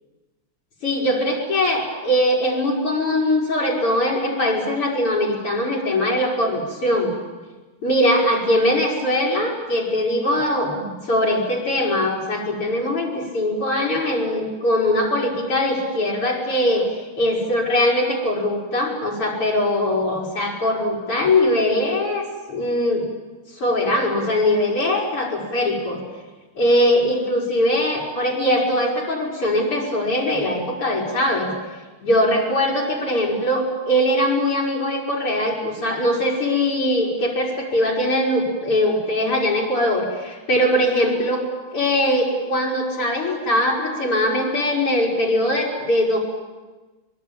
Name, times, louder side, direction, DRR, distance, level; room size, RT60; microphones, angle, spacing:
voice 1, 0.8-7.1 7.8-16.9 17.2-23.1 23.6-26.0 26.6-31.5 32.0-41.5 41.7-46.2, left 1 dB, 85° left, -2 dB, 6.5 m, -21 dB
25.0 x 22.5 x 8.9 m, 1.2 s
omnidirectional pair, 2.4 m